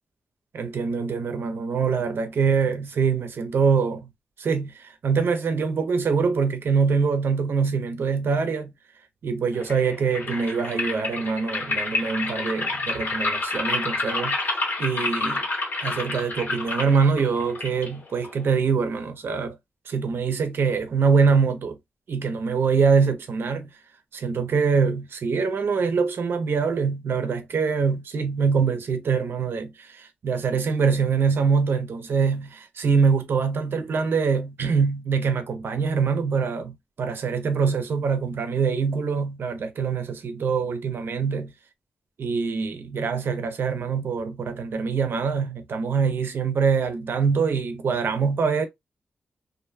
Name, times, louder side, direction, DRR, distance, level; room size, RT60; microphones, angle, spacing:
voice 1, 0.5-4.1 4.4-8.7 9.2-15.4 15.8-19.6 19.9-21.8 22.1-23.7 24.1-41.5 42.2-48.7, right 5 dB, 75° right, 0.6 m, -24 dB
sound 1, 9.6-18.6, left 2 dB, 65° left, 1.3 m, -29 dB
2.5 x 2.1 x 2.5 m
wide cardioid pair, 95°, 4 cm